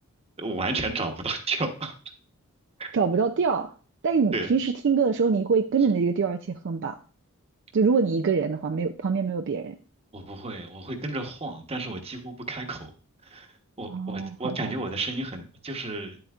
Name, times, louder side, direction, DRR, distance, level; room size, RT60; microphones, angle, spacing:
voice 1, 0.4-1.9 2.8-2.9 4.3-4.5 10.1-12.9 13.2-13.5 13.8-16.2, right 3 dB, 25° right, 4 dB, 1.0 m, -32 dB
voice 2, 2.9-3.7 4.0-7.0 7.7-9.8 13.9-14.8, right 5 dB, 55° right, 6 dB, 0.4 m, -24 dB
10.5 x 7.8 x 2.4 m, 0.39 s
head